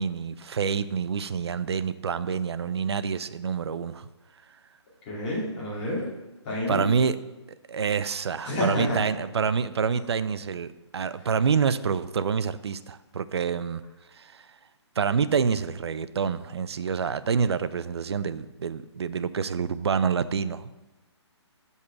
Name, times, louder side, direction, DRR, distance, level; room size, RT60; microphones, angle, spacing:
voice 1, 0.0-4.1 6.7-7.2 7.7-13.8 14.1-14.5 15.0-20.7, right 6 dB, 65° right, 14 dB, 0.5 m, -27 dB
voice 2, 5.1-6.1 6.4-6.8 8.4-9.0, left 1 dB, 20° left, -7 dB, 2.4 m, -28 dB
6.1 x 5.5 x 6.8 m, 1.1 s
hypercardioid pair, 175°, 15 cm